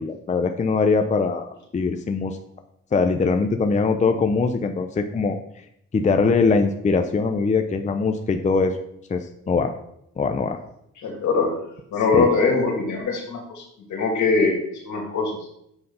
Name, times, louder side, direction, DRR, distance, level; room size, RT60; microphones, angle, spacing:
voice 1, 0.0-2.4 2.9-5.4 5.9-8.8 9.1-9.7 10.2-10.6 12.2-12.3, left 4 dB, 25° left, 6 dB, 0.6 m, -22 dB
voice 2, 11.0-11.6 11.9-13.6 13.9-14.5 14.8-15.4, left 4 dB, 70° left, 0 dB, 2.3 m, -21 dB
7.9 x 4.1 x 5.4 m, 0.76 s
cardioid pair, 90°, 30 cm